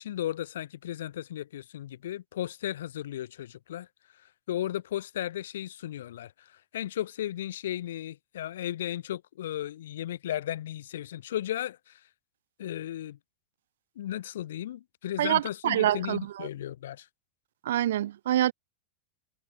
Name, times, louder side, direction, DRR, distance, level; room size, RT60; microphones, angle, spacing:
voice 1, 0.0-3.9 4.5-12.0 12.6-13.2 14.0-17.1, left 12 dB, 85° left, 4.4 m, -35 dB
voice 2, 15.2-16.5 17.7-18.5, right 12 dB, 85° right, 1.8 m, -26 dB
supercardioid pair, 135°, 0 cm